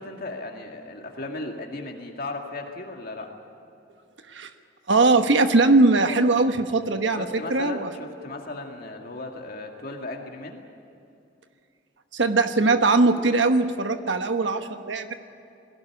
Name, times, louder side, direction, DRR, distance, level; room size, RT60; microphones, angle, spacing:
voice 1, 0.0-3.3 7.2-10.6, left 2 dB, 55° left, 2 dB, 2.2 m, -36 dB
voice 2, 4.9-7.9 12.1-15.1, right 3 dB, 80° right, 7 dB, 1.2 m, -20 dB
21.5 x 17.0 x 9.8 m, 2.6 s
head